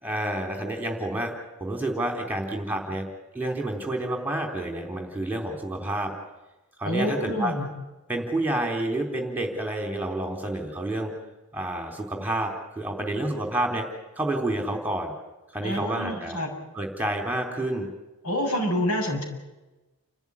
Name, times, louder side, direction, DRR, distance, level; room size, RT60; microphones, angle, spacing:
voice 1, 0.0-1.3 1.6-3.1 3.3-6.1 6.8-7.5 8.1-11.1 11.5-13.9 14.2-15.1 15.5-16.4 16.8-17.9, right 1 dB, 10° right, 3 dB, 3.5 m, -29 dB
voice 2, 6.8-7.7 15.6-16.5 18.2-19.2, equal, 80° left, 2 dB, 7.3 m, -27 dB
29.5 x 14.5 x 9.7 m, 1.1 s
head